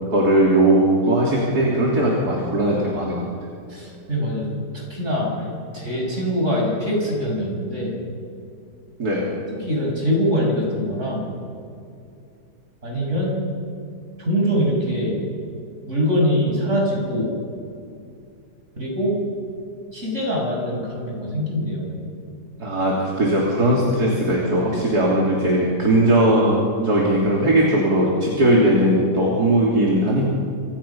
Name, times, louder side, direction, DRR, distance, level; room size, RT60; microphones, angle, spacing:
voice 1, 0.1-3.3 9.0-9.3 22.6-30.3, right 1 dB, 55° right, -3 dB, 3.8 m, -19 dB
voice 2, 3.7-7.9 9.6-11.3 12.8-13.4 14.2-15.2 15.9-17.3 18.7-19.2 19.9-21.9, equal, 40° right, -1 dB, 6.9 m, -23 dB
27.5 x 27.0 x 5.9 m, 2.5 s
omnidirectional pair, 2.0 m